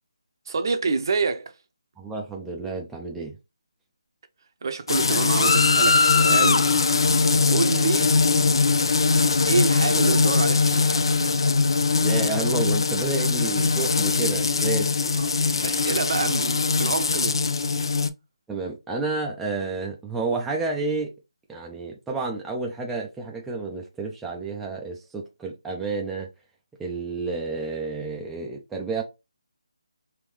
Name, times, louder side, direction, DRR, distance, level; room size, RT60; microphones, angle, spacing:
voice 1, 0.5-1.5 4.6-6.7 7.5-8.1 9.5-11.1 15.2-15.3 15.6-17.5, right 4 dB, 50° right, 0.6 m, -27 dB
voice 2, 2.0-3.4 12.0-15.0 18.5-21.1 21.5-26.3 26.8-29.0, right 3 dB, 5° right, 0.4 m, -30 dB
sound 1, 4.9-18.1, left 4 dB, 60° left, 0.4 m, -21 dB
3.5 x 2.6 x 3.1 m
figure-of-eight pair, 160°, 3 cm